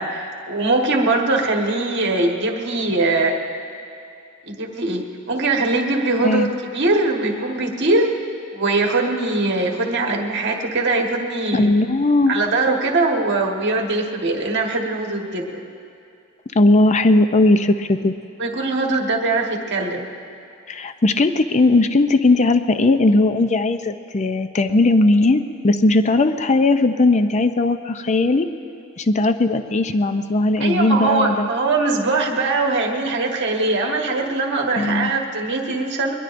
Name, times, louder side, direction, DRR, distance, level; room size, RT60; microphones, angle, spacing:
voice 1, 0.0-3.4 4.5-8.2 8.5-11.7 12.3-15.6 18.4-20.1 30.6-36.1, right 2 dB, 55° right, 1 dB, 1.5 m, -21 dB
voice 2, 11.5-12.3 16.5-18.1 20.7-28.5 29.0-31.5 34.8-35.1, left 2 dB, 35° left, 9 dB, 0.5 m, -17 dB
23.0 x 20.5 x 2.6 m, 2.6 s
head